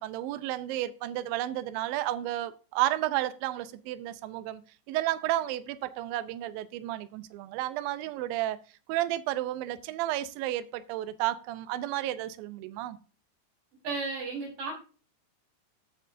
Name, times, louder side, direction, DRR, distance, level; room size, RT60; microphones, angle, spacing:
voice 1, 0.0-4.6 4.9-8.6 8.9-13.0, right 14 dB, 85° right, 2.4 m, -32 dB
voice 2, 13.8-14.7, right 3 dB, 65° right, 5.8 m, -33 dB
14.5 x 6.7 x 2.6 m
omnidirectional pair, 4.2 m